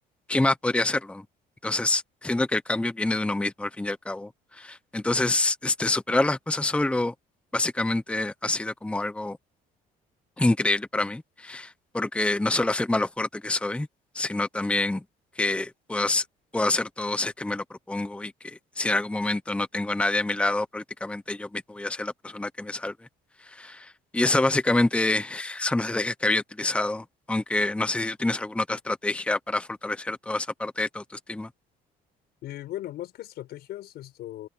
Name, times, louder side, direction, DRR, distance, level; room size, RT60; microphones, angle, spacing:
voice 1, 0.3-1.2 1.6-7.1 7.5-9.4 10.4-13.9 14.1-15.0 15.4-16.2 16.5-22.9 23.4-31.0 31.3-31.5, left 2 dB, 5° left, 1.0 m, -27 dB
voice 2, 32.4-34.5, left 14 dB, 75° left, 5.0 m, -38 dB
cardioid pair, 110°, 17 cm